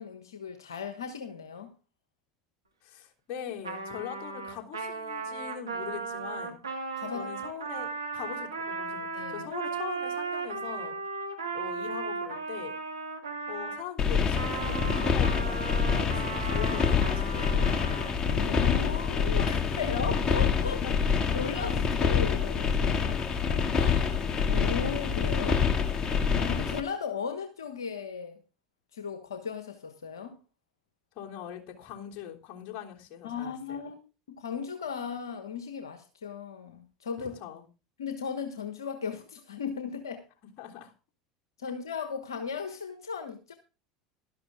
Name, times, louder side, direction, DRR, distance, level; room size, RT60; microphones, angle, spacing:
voice 1, 0.0-1.7 7.0-7.3 9.1-9.5 18.2-20.8 21.3-23.2 23.5-25.7 26.3-28.4 28.9-30.4 33.2-37.4 38.0-40.3 41.6-43.5, left 6 dB, 85° left, 1.3 m, -36 dB
voice 2, 2.8-6.6 7.1-11.0 11.5-12.7 13.5-17.9 20.8-21.1 31.1-33.8 37.4-37.7 40.6-40.9, left 10 dB, 50° left, 3.4 m, -42 dB
Trumpet, 3.6-13.8 14.3-18.1, right 4 dB, 90° right, 2.3 m, -36 dB
sound 1, 14.0-26.8, left 6 dB, 35° left, 2.2 m, -26 dB
12.5 x 11.5 x 3.6 m
hypercardioid pair, 75°, 2 cm